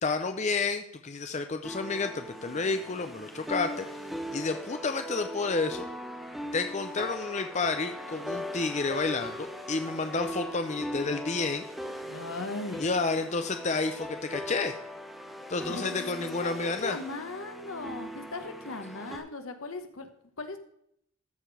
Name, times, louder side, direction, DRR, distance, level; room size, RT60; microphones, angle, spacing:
voice 1, 0.0-3.9 4.3-5.9 6.5-11.7 12.8-14.8 15.5-17.0, left 4 dB, 35° left, 7 dB, 0.6 m, -30 dB
sound 1, 1.6-19.2, equal, ahead, 1.1 m, -40 dB
voice 2, 12.0-12.8 15.7-20.6, left 3 dB, 80° left, 8 dB, 1.2 m, -38 dB
13.5 x 5.1 x 4.8 m, 0.73 s
head